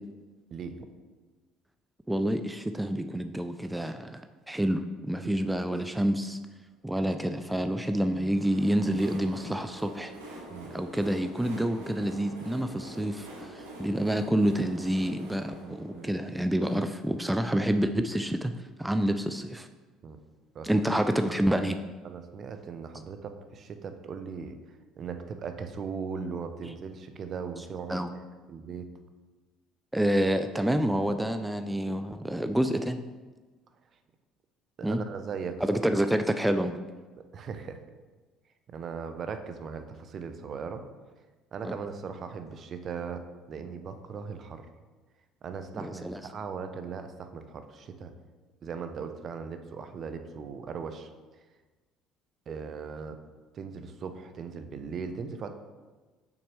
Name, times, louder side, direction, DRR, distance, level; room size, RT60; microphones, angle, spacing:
voice 1, 2.1-4.2 4.5-6.4 6.8-10.1 10.7-18.5 18.8-19.7 20.6-21.8 26.6-26.7 27.9-28.1 29.9-33.0 34.8-35.0 35.6-36.8 41.6-41.8 45.8-46.2, right 1 dB, 5° right, 8 dB, 0.4 m, -28 dB
Train, 7.9-17.5, right 1 dB, 90° right, 1.4 m, -46 dB
voice 2, 15.6-16.1 20.0-20.2 20.5-20.7 22.0-24.6 25.0-28.2 28.5-28.9 34.8-35.6 37.3-37.8 38.7-40.8 41.5-44.7 45.4-48.1 48.6-51.1 52.5-53.2 53.5-55.5, right 5 dB, 50° right, 8 dB, 0.7 m, -38 dB
6.5 x 5.8 x 3.2 m, 1.3 s
hypercardioid pair, 60°, 0 cm